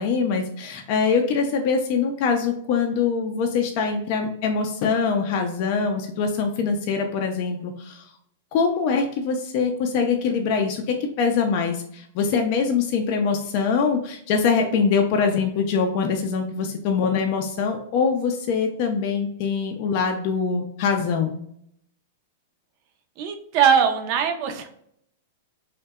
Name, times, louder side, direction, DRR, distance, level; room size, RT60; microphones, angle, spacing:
voice 1, 0.0-8.1 8.5-21.4, left 5 dB, 50° left, 3 dB, 0.4 m, -23 dB
voice 2, 23.2-24.7, right 7 dB, 50° right, 6 dB, 0.4 m, -21 dB
2.6 x 2.1 x 2.2 m, 0.70 s
hypercardioid pair, 115°, 0 cm